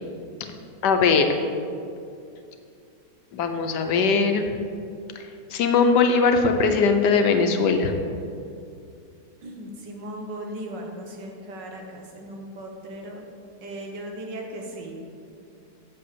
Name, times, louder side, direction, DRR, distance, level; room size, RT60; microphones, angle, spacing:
voice 1, 0.8-1.3 3.3-4.5 5.5-7.9, left 5 dB, 75° left, 6 dB, 1.4 m, -20 dB
voice 2, 9.4-13.2 13.6-14.9, right 1 dB, 85° right, 1 dB, 2.0 m, -37 dB
7.8 x 7.1 x 6.9 m, 2.4 s
omnidirectional pair, 1.9 m